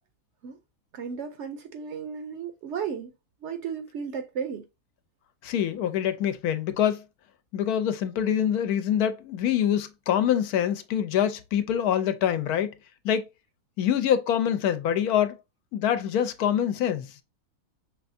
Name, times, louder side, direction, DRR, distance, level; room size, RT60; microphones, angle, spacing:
voice 1, 0.9-3.1 3.4-4.6, right 6 dB, 65° right, 0.7 m, -34 dB
voice 2, 5.4-7.0 7.5-12.7 13.0-13.3 13.8-15.4 15.7-17.1, left 9 dB, 85° left, 1.1 m, -25 dB
5.4 x 3.4 x 2.6 m
omnidirectional pair, 1.6 m